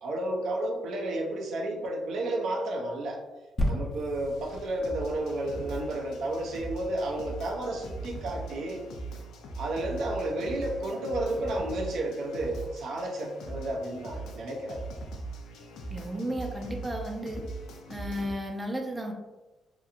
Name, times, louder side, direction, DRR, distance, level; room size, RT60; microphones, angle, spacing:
voice 1, 0.0-3.2 3.7-8.8 9.6-14.9, right 1 dB, 75° right, 1 dB, 0.5 m, -32 dB
sound 1, 3.6-7.2 7.8-7.9, equal, 30° left, 0.6 m, -34 dB
sound 2, 4.0-18.3, right 2 dB, 80° left, 0.4 m, -41 dB
voice 2, 15.9-17.4 17.9-19.1, equal, 20° right, 2 dB, 0.5 m, -34 dB
2.8 x 2.5 x 2.4 m, 1.1 s
cardioid pair, 90°, 0 cm